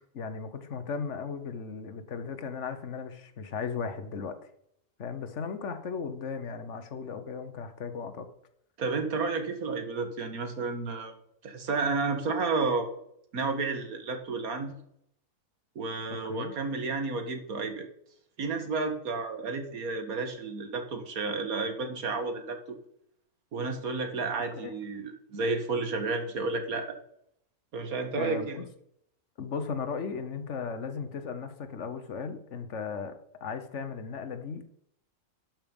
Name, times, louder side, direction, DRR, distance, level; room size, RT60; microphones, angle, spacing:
voice 1, 0.1-4.4 5.0-8.3 16.3-16.5 24.6-24.7 28.2-28.6 29.4-34.7, left 5 dB, 55° left, 9 dB, 1.3 m, -36 dB
voice 2, 8.8-11.1 11.4-12.9 13.3-14.8 15.8-17.9 18.4-22.6 23.5-27.0 27.7-28.6, right 4 dB, 75° right, 6 dB, 1.9 m, -31 dB
12.0 x 6.0 x 5.3 m, 0.71 s
omnidirectional pair, 1.5 m